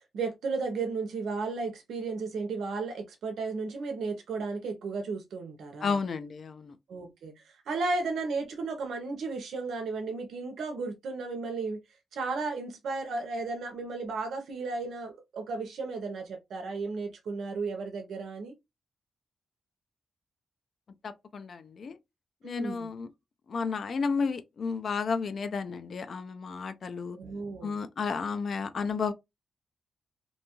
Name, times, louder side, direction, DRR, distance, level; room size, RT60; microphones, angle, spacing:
voice 1, 0.0-6.0 6.9-11.8 12.1-18.5 22.4-22.9 27.1-27.8, right 4 dB, 85° right, 0.5 m, -34 dB
voice 2, 5.8-6.8 21.0-22.0 22.4-23.1 23.5-27.2 27.6-29.1, left 5 dB, 50° left, 0.3 m, -32 dB
2.6 x 2.2 x 2.8 m
wide cardioid pair, 140°, 0 cm